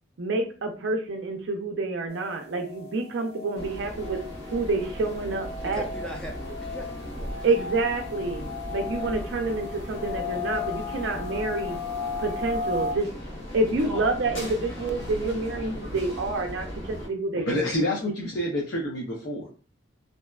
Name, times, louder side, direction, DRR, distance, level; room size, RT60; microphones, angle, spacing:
voice 1, 0.2-4.2 4.5-5.8 7.4-11.8 12.2-13.1 13.5-17.6, right 3 dB, 70° right, 3 dB, 0.4 m, -28 dB
sound 1, 2.1-12.9, left 5 dB, 30° left, 0.7 m, -36 dB
sound 2, 3.5-17.1, equal, 90° left, 0.9 m, -38 dB
voice 2, 5.6-7.6 13.6-13.8 14.6-14.8, right 1 dB, 5° left, -1 dB, 0.4 m, -40 dB
voice 3, 17.4-19.4, left 1 dB, 70° left, -3 dB, 0.6 m, -28 dB
2.6 x 2.2 x 2.3 m, 0.38 s
head